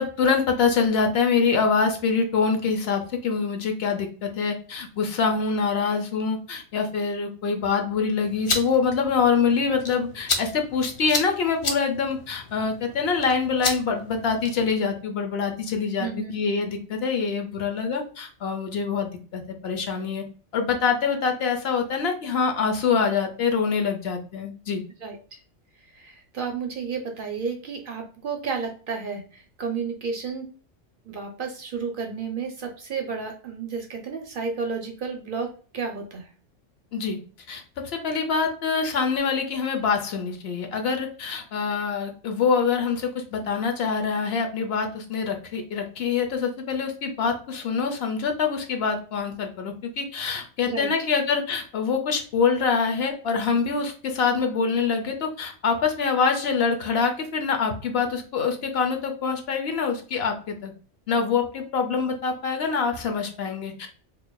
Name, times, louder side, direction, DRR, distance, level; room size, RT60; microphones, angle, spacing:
voice 1, 0.0-20.2 20.5-24.8 36.9-37.2 37.5-60.7 61.1-63.9, left 5 dB, 65° left, 4 dB, 0.8 m, -25 dB
sound 1, 8.2-14.7, left 3 dB, 45° left, 0.4 m, -32 dB
voice 2, 16.0-16.3 25.0-25.2 25.9-30.5 31.0-36.3 50.6-50.9, right 5 dB, 55° right, 4 dB, 0.7 m, -32 dB
4.5 x 2.6 x 2.2 m, 0.39 s
omnidirectional pair, 1.2 m